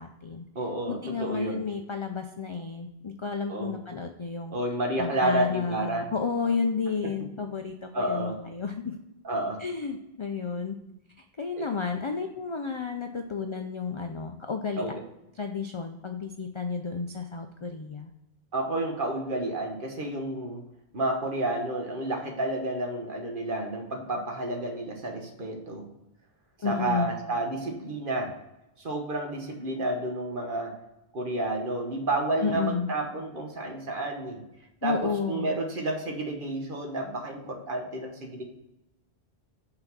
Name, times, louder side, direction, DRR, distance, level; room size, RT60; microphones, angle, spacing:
voice 1, 0.0-0.5 0.9-4.5 5.0-9.0 9.6-10.8 11.2-14.9 15.4-18.1 26.6-27.2 32.4-32.9 34.8-35.5, left 5 dB, 45° left, 5 dB, 0.4 m, -32 dB
voice 2, 0.5-1.6 3.5-3.8 4.5-6.1 7.9-8.4 9.2-9.6 11.6-11.7 14.8-15.0 18.5-20.6 20.9-25.9 26.6-28.3 28.8-30.8 31.1-34.4 34.8-38.4, right 2 dB, 55° right, 2 dB, 1.3 m, -30 dB
5.8 x 3.9 x 5.9 m, 0.91 s
omnidirectional pair, 1.1 m